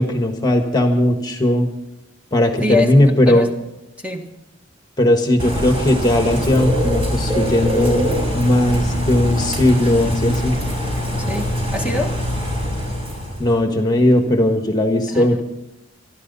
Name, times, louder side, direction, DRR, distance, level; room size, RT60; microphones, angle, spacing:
voice 1, 0.0-1.7 2.3-3.5 5.0-10.6 13.4-15.4, left 1 dB, 20° left, 5 dB, 1.5 m, -17 dB
voice 2, 2.6-3.0 3.3-3.5 4.0-4.3 11.2-12.1 15.1-15.3, left 2 dB, 5° right, 2 dB, 1.8 m, -24 dB
Bird / Rain, 5.4-13.5, equal, 30° right, 5.9 m, -23 dB
26.0 x 13.0 x 4.1 m, 0.91 s
head